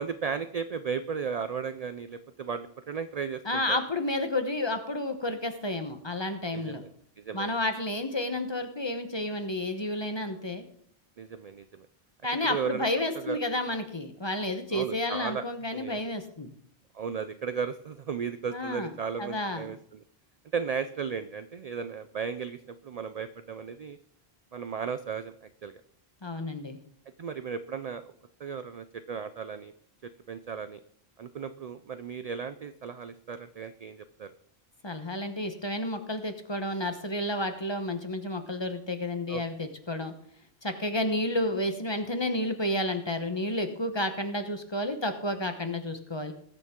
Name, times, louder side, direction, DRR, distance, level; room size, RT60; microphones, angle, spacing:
voice 1, 0.0-3.8 6.5-6.9 7.2-7.5 11.2-11.9 12.5-12.8 13.1-13.4 14.7-15.4 15.7-16.0 16.9-20.0 20.5-24.0 24.5-25.8 27.2-28.1 28.4-29.7 30.3-30.8 31.2-34.3 39.3-39.4, right 6 dB, 55° right, 11 dB, 0.4 m, -35 dB
voice 2, 3.4-6.8 7.3-10.6 12.2-16.5 18.5-18.9 19.2-19.7 26.2-26.8 34.8-40.1 40.6-46.3, left 1 dB, 25° left, 7 dB, 1.0 m, -31 dB
19.5 x 6.8 x 3.7 m, 0.65 s
omnidirectional pair, 1.1 m